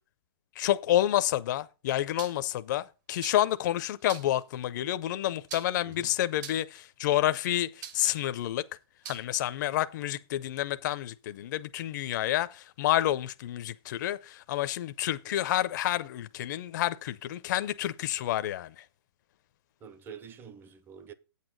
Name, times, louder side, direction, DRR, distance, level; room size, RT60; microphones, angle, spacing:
voice 1, 0.6-8.7 9.1-18.8, left 13 dB, 45° left, 0.5 m, -29 dB
sound 1, 2.2-2.5 3.2-3.5 4.1-4.4 5.5-5.9 6.4-6.8 7.8-8.2 9.0-9.2, right 8 dB, 45° right, 1.3 m, -43 dB
voice 2, 19.8-21.1, right 7 dB, 15° right, 0.7 m, -47 dB
8.5 x 8.2 x 3.9 m
hypercardioid pair, 145°, 14 cm